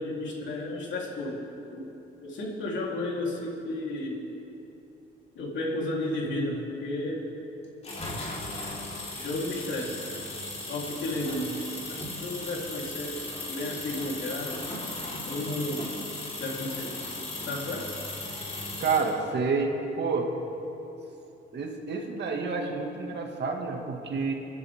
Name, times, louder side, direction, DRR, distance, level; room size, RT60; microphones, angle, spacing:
voice 1, 0.0-1.4 1.7-1.9 2.2-4.2 5.3-7.2 9.1-10.0 10.7-13.2 13.5-14.5 15.2-15.9 16.4-17.1 17.5-17.9, left 1 dB, 70° left, -3 dB, 3.7 m, -33 dB
sound 1, 7.8-19.1, left 2 dB, 35° left, 4.2 m, -37 dB
voice 2, 18.8-20.3 21.5-24.3, right 4 dB, 60° right, 2 dB, 2.1 m, -29 dB
27.5 x 11.0 x 3.7 m, 3.0 s
cardioid pair, 90°, 20 cm